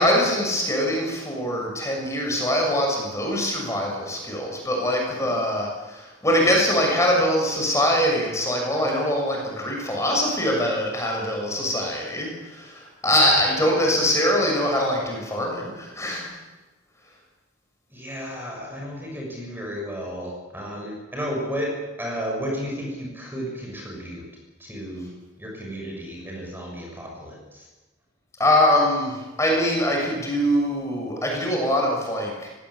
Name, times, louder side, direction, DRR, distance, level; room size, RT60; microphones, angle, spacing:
voice 1, 0.0-16.4 28.4-32.5, left 1 dB, 15° left, 0 dB, 6.7 m, -23 dB
voice 2, 17.9-24.3 24.6-25.1 25.4-27.6, equal, 10° right, -1 dB, 6.4 m, -33 dB
24.0 x 17.5 x 8.4 m, 1.2 s
head